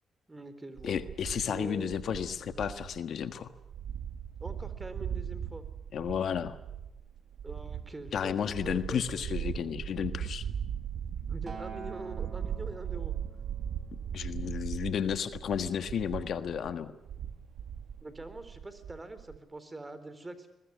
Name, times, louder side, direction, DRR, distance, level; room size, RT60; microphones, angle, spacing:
voice 1, 0.3-1.0 1.5-2.0 4.4-5.6 7.4-8.3 8.6-9.0 11.3-13.2 18.0-20.5, right 2 dB, 20° right, 12 dB, 4.0 m, -43 dB
voice 2, 0.8-3.5 5.9-6.6 8.1-10.4 14.1-16.9, left 8 dB, 65° left, 10 dB, 1.4 m, -32 dB
sound 1, 0.8-19.4, right 8 dB, 75° right, 1.9 m, -39 dB
Acoustic guitar, 11.5-15.8 16.6-16.7, right 5 dB, 45° right, 3.8 m, -49 dB
22.5 x 20.5 x 9.7 m, 0.88 s
supercardioid pair, 60°, 0 cm